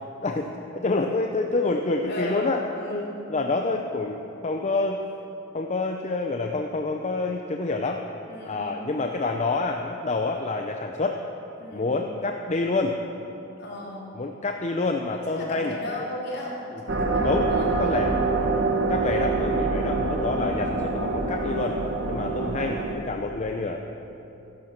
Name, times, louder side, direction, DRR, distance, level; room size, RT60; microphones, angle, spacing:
voice 1, 0.2-2.6 2.9-5.0 5.5-8.0 8.5-11.2 11.7-13.0 14.1-16.1 17.2-18.1 18.9-21.8 22.1-23.8, left 3 dB, 35° left, 3 dB, 0.6 m, -27 dB
voice 2, 2.0-3.1 8.3-8.7 11.6-11.9 13.6-14.1 15.3-18.1 18.4-18.7 19.7-20.0 20.3-20.6 22.1-22.5, left 1 dB, 55° left, -4 dB, 3.2 m, -36 dB
sound 1, 16.9-23.0, right 3 dB, 55° right, 1.4 m, -25 dB
13.5 x 11.5 x 5.9 m, 2.9 s
head